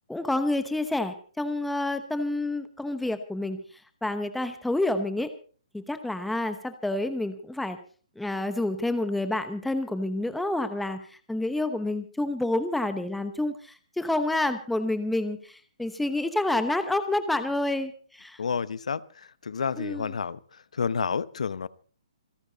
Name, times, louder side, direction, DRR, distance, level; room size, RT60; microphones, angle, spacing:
voice 1, 0.1-3.6 4.0-5.3 5.7-7.8 8.2-18.4 19.8-20.2, left 2 dB, ahead, 10 dB, 0.9 m, -28 dB
voice 2, 18.4-19.0 19.4-20.4 20.8-21.7, left 6 dB, 80° left, 19 dB, 0.8 m, -29 dB
27.5 x 10.5 x 4.0 m, 0.41 s
hypercardioid pair, 170°, 4 cm